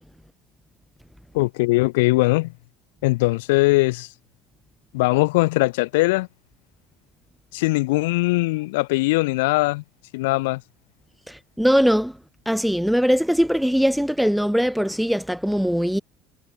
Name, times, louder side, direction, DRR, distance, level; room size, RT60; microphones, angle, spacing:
voice 1, 1.3-2.5 3.0-4.1 4.9-6.3 7.5-9.8 10.1-10.6, left 22 dB, 70° left, 2.5 m, -20 dB
voice 2, 11.3-12.1 12.5-16.0, equal, ahead, 0.6 m, -21 dB
hypercardioid pair, 65°, 0 cm